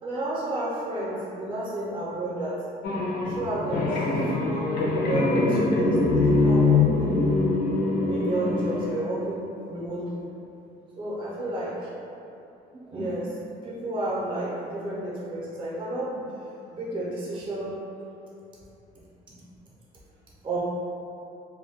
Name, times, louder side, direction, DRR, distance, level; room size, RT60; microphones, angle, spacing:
voice 1, 0.0-2.6 3.3-4.0 4.4-7.5 8.0-10.3 10.9-11.9 12.9-13.4 13.6-16.2 16.7-17.8 20.4-20.6, right 1 dB, 30° right, -6 dB, 0.6 m, -31 dB
sound 1, 2.8-8.9, left 3 dB, 65° left, 0.5 m, -23 dB
2.2 x 2.2 x 3.4 m, 2.7 s
cardioid pair, 110°, 17 cm